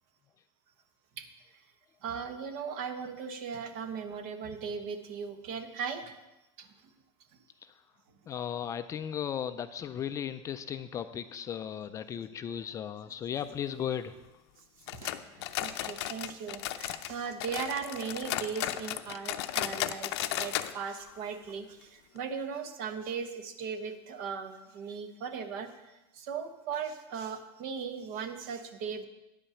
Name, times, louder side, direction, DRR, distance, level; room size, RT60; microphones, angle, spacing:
voice 1, 2.0-6.1 6.6-6.7 15.0-15.1 15.6-29.1, right 6 dB, 60° right, 8 dB, 1.1 m, -38 dB
voice 2, 8.3-14.2, left 9 dB, 25° left, 11 dB, 0.3 m, -36 dB
sound 1, 14.9-17.1 17.4-20.7 21.0-21.1 21.5-21.6 22.2-22.3, left 13 dB, 80° left, 0.6 m, -35 dB
10.0 x 5.4 x 7.1 m, 0.98 s
supercardioid pair, 150°, 14 cm